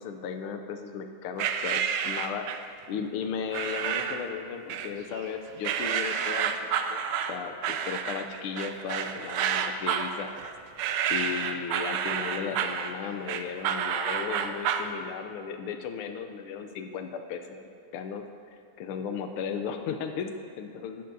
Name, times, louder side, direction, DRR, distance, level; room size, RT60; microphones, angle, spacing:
voice 1, 0.0-2.5 2.9-7.0 7.3-10.3 11.1-18.2 18.8-21.1, left 6 dB, 90° left, 6 dB, 1.5 m, -35 dB
sound 1, 1.4-2.7 3.5-4.3 4.7-5.3 5.6-14.9, right 8 dB, 85° right, 1.5 m, -30 dB
13.5 x 11.5 x 2.7 m, 2.3 s
omnidirectional pair, 2.3 m